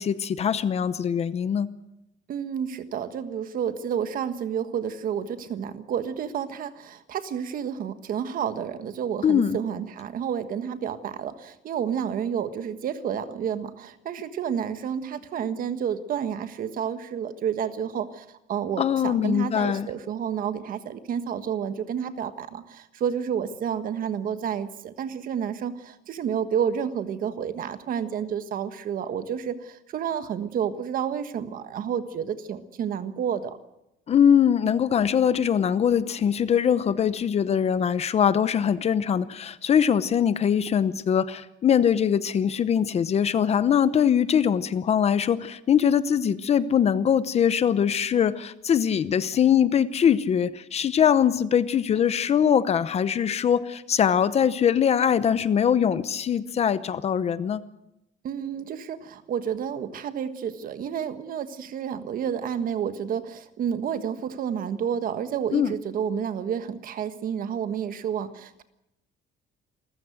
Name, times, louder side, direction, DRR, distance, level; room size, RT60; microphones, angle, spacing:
voice 1, 0.0-1.7 9.2-9.6 18.8-19.9 34.1-57.6 65.5-65.7, left 8 dB, 35° left, 14 dB, 0.8 m, -22 dB
voice 2, 2.3-33.6 58.2-68.6, right 8 dB, 50° right, 10 dB, 1.5 m, -30 dB
27.5 x 15.0 x 7.9 m, 0.88 s
cardioid pair, 170°, 19 cm